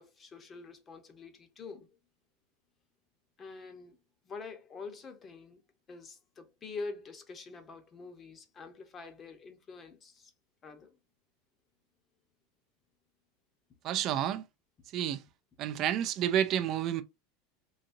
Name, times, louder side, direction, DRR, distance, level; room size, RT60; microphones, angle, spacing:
voice 1, 0.0-1.9 3.4-4.0 4.2-5.6 5.9-10.3 10.6-11.0, left 4 dB, 30° left, 0.9 m, -46 dB
voice 2, 13.8-14.4 14.9-15.2 15.6-17.0, right 10 dB, 45° right, 0.4 m, -30 dB
3.9 x 2.6 x 2.6 m
supercardioid pair, 115°, 0 cm